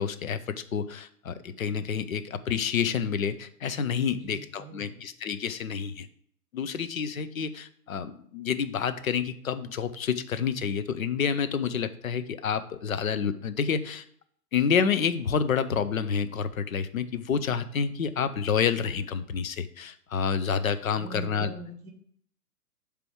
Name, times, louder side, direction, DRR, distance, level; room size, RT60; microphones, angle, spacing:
voice 1, 0.0-6.1 6.5-14.0 14.5-21.5, left 6 dB, 60° left, 11 dB, 0.7 m, -29 dB
voice 2, 4.1-5.0 20.9-21.9, right 4 dB, 20° right, 1 dB, 1.0 m, -43 dB
7.7 x 3.4 x 6.1 m, 0.64 s
figure-of-eight pair, 125°, 47 cm